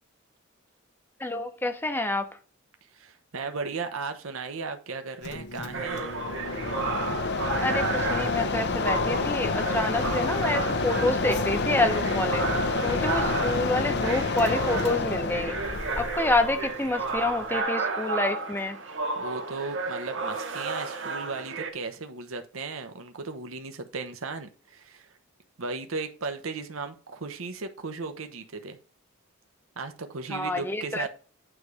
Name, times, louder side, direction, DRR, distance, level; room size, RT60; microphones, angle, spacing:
voice 1, 1.2-2.3 7.6-12.4 12.8-15.6 16.0-18.8 30.3-31.1, left 2 dB, 10° left, 0.8 m, -28 dB
voice 2, 2.9-6.1 19.2-25.1 25.6-28.8 29.8-31.1, right 4 dB, 75° right, 0.9 m, -36 dB
Mechanisms, 5.2-17.6, left 3 dB, 55° left, 0.7 m, -29 dB
sound 1, 5.7-21.7, right 3 dB, 60° right, 1.3 m, -32 dB
9.0 x 3.2 x 4.8 m
head